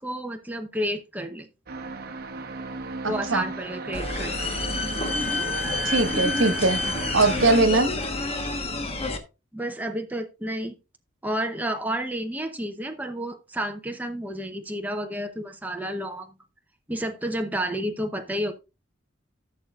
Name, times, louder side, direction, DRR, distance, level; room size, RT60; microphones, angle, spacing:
voice 1, 0.0-1.5 3.1-4.5 9.5-10.7 11.2-16.3 16.9-18.5, right 1 dB, 10° right, 0.8 m, -30 dB
sound 1, 1.7-7.6, right 3 dB, 55° right, 1.1 m, -35 dB
voice 2, 3.0-3.4 5.8-6.8 7.1-7.9, right 2 dB, 85° right, 1.3 m, -21 dB
sound 2, 3.9-9.2, left 3 dB, 30° left, 1.2 m, -28 dB
15.0 x 6.6 x 2.4 m
head